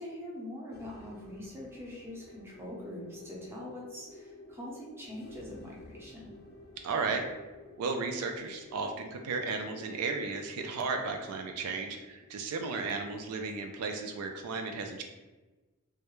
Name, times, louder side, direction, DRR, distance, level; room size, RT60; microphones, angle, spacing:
voice 1, 0.0-6.3, left 1 dB, 10° right, -4 dB, 0.5 m, -43 dB
sound 1, 0.7-14.3, left 2 dB, 45° left, 0.4 m, -53 dB
voice 2, 6.8-7.2 7.8-15.0, right 4 dB, 90° right, 5 dB, 0.3 m, -34 dB
2.3 x 2.1 x 2.9 m, 1.2 s
head